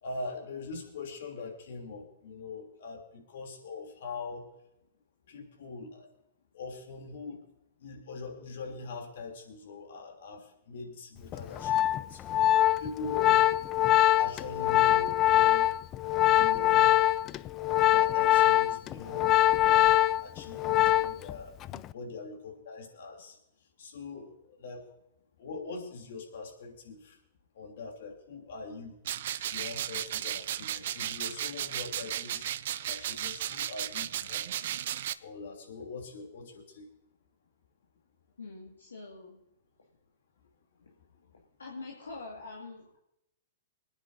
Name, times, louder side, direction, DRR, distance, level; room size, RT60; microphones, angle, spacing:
voice 1, 0.0-4.5 5.3-6.1 6.5-7.4 7.8-13.4 14.2-15.7 16.3-16.9 17.9-19.9 20.2-21.5 21.9-23.4 23.8-24.9 25.4-27.2 27.5-29.0 29.5-32.5 32.8-34.7 35.2-36.9, left 3 dB, 65° left, 1 dB, 3.2 m, -42 dB
Organ, 11.3-21.3 21.6-21.9, left 13 dB, 30° left, 0.4 m, -23 dB
sound 1, 29.0-35.1, right 11 dB, 60° right, 0.5 m, -35 dB
voice 2, 38.4-39.4 41.6-43.0, left 3 dB, 85° left, -2 dB, 2.1 m, -44 dB
25.0 x 9.7 x 2.8 m, 0.83 s
hypercardioid pair, 115°, 0 cm